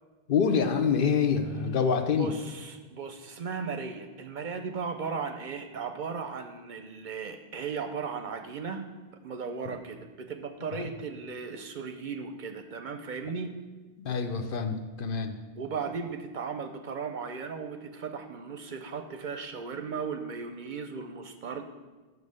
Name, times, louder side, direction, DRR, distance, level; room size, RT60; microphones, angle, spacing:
voice 1, 0.3-2.3 9.7-9.8 10.7-10.9 14.0-15.4, left 6 dB, 65° left, 7 dB, 0.8 m, -26 dB
voice 2, 2.2-8.9 9.2-13.5 15.6-21.6, right 5 dB, 60° right, 7 dB, 0.6 m, -36 dB
6.3 x 5.4 x 6.5 m, 1.3 s
omnidirectional pair, 1.0 m